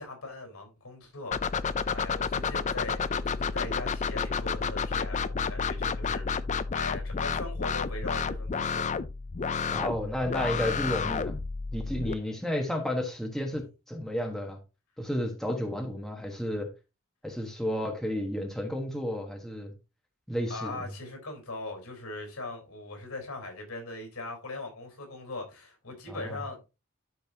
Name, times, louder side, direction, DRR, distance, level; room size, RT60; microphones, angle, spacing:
voice 1, 0.0-1.6 1.9-6.3 6.7-8.9 20.5-26.7, left 2 dB, 80° left, 4.2 m, -40 dB
sound 1, 1.3-12.1, left 5 dB, 35° left, 0.4 m, -31 dB
voice 2, 9.7-11.3 11.7-14.6 15.0-16.7 17.2-19.7 20.3-20.8 26.1-26.4, left 1 dB, ahead, 1.3 m, -32 dB
12.0 x 5.4 x 2.8 m
head